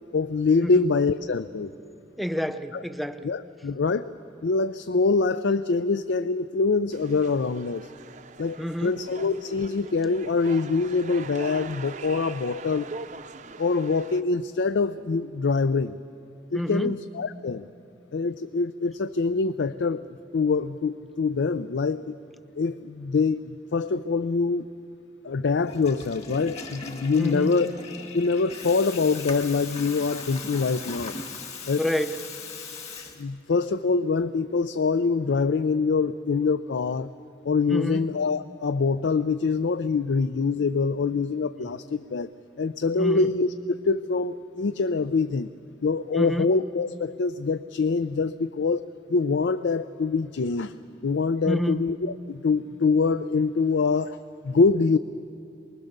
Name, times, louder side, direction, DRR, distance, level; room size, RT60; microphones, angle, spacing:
voice 1, 0.1-1.7 2.7-2.8 3.2-4.1 4.4-7.9 8.4-12.9 13.6-16.0 16.5-17.6 18.1-22.2 22.6-24.7 25.2-27.7 28.1-31.2 31.7-31.8 33.2-37.1 37.5-42.3 42.6-45.5 45.8-48.8 49.1-50.7 51.0-55.0, left 4 dB, 80° left, 13 dB, 0.5 m, -25 dB
voice 2, 2.2-3.3 8.6-8.9 16.5-17.0 27.2-27.6 31.8-32.2 37.7-38.1 41.6-41.7 43.0-43.3 46.2-46.5 51.4-51.8, equal, ahead, 10 dB, 0.6 m, -28 dB
sound 1, 6.9-14.2, right 4 dB, 40° right, 0.6 m, -41 dB
Water tap faucet / Toilet flush, 25.6-33.6, left 4 dB, 35° left, 1.9 m, -39 dB
24.0 x 20.5 x 6.7 m, 2.6 s
head